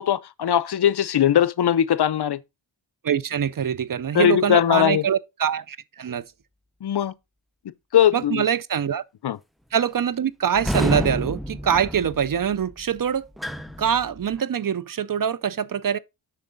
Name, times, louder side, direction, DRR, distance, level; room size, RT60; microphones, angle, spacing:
voice 1, 0.0-2.4 4.1-5.0 6.8-7.1 7.9-8.5 9.2-9.4, left 10 dB, 60° left, 0.6 m, -20 dB
voice 2, 3.0-6.3 8.1-9.0 9.7-13.3 13.8-16.0, right 8 dB, 45° right, 0.5 m, -24 dB
sound 1, 10.5-14.4, equal, ahead, 0.5 m, -29 dB
7.0 x 6.3 x 3.8 m
cardioid pair, 60°, 47 cm